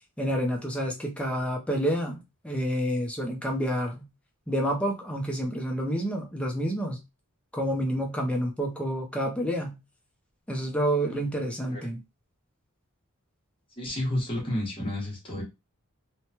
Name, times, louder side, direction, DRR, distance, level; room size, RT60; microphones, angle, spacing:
voice 1, 0.2-4.1 4.5-7.0 7.5-9.8 10.5-12.0, equal, 5° left, 0.6 m, -29 dB
voice 2, 13.8-15.4, left 1 dB, 25° left, 1.3 m, -31 dB
3.1 x 2.2 x 2.8 m
head